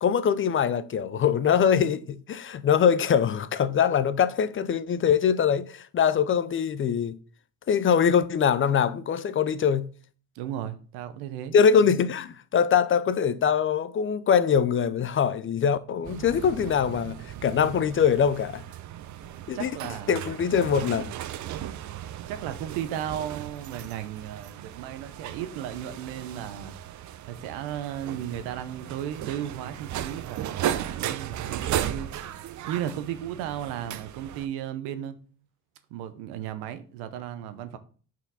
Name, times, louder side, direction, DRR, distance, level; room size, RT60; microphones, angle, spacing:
voice 1, 0.0-7.2 7.7-9.9 11.5-18.6 19.5-19.7 20.1-21.1, left 7 dB, 35° left, 0.5 m, -23 dB
voice 2, 10.3-11.5 19.5-20.3 22.3-26.8 27.3-32.1 32.7-35.2 35.9-37.8, right 10 dB, 85° right, 0.8 m, -35 dB
sound 1, 16.0-34.5, right 11 dB, 50° right, 0.6 m, -36 dB
5.7 x 4.6 x 4.0 m
supercardioid pair, 85°, 37 cm